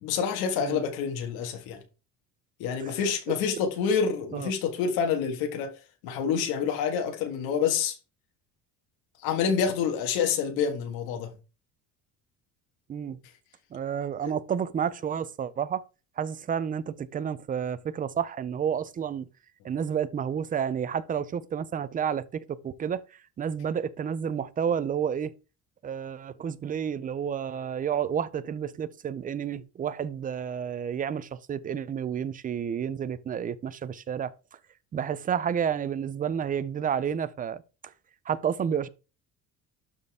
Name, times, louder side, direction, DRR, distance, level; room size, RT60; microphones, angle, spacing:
voice 1, 0.0-1.8 2.6-5.7 6.0-8.0 9.2-11.3 14.2-14.3, left 7 dB, 85° left, 1.7 m, -27 dB
voice 2, 2.8-3.1 4.3-4.5 12.9-13.2 13.7-15.8 16.2-19.3 19.6-23.0 23.4-25.3 25.8-34.3 34.9-37.6 38.3-38.9, right 8 dB, 25° right, 0.4 m, -30 dB
12.0 x 4.2 x 3.5 m
cardioid pair, 135°, 36 cm